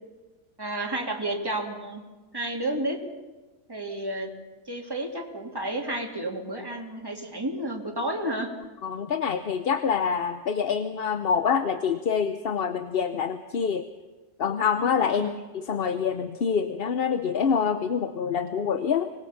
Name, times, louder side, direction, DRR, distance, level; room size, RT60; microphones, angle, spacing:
voice 1, 0.6-2.0 2.3-3.0 3.7-4.3 4.7-8.5 15.1-15.4, right 1 dB, 15° right, 1 dB, 2.6 m, -31 dB
voice 2, 8.8-13.9 14.4-19.1, left 6 dB, 50° left, 10 dB, 0.9 m, -26 dB
24.5 x 20.0 x 5.8 m, 1.2 s
omnidirectional pair, 1.3 m